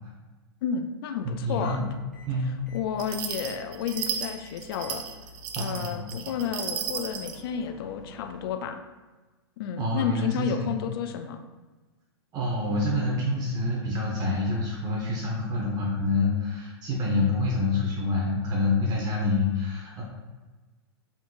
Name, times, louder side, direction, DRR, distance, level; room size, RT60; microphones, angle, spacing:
voice 1, 0.6-1.9 2.7-5.0 5.6-8.8 9.6-11.4, left 7 dB, 60° left, 7 dB, 0.4 m, -31 dB
sound 1, 1.2-8.5, left 3 dB, 5° left, 1.0 m, -50 dB
voice 2, 1.2-1.9 2.3-2.5 5.5-6.0 9.8-10.7 12.3-20.0, left 2 dB, 30° right, -3 dB, 0.9 m, -27 dB
sound 2, 3.0-7.4, right 8 dB, 45° right, 0.5 m, -34 dB
4.0 x 3.9 x 2.4 m, 1.3 s
hypercardioid pair, 130°, 14 cm